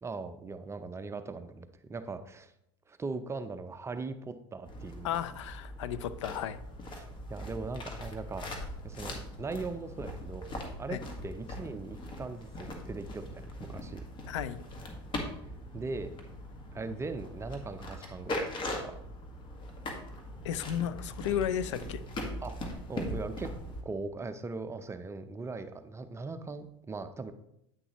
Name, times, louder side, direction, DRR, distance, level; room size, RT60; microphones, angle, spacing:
voice 1, 0.0-2.5 2.9-5.1 6.9-8.5 8.8-14.0 15.7-16.1 16.7-19.0 22.4-22.6 22.9-23.5 23.8-27.3, right 3 dB, 20° right, 10 dB, 0.6 m, -40 dB
sound 1, 4.6-23.8, left 1 dB, 30° left, 1.7 m, -41 dB
voice 2, 5.0-6.6 10.9-11.0 14.3-14.6 20.4-22.0, left 9 dB, 80° left, 13 dB, 0.6 m, -33 dB
9.3 x 6.1 x 3.0 m, 0.78 s
hypercardioid pair, 95°, 15 cm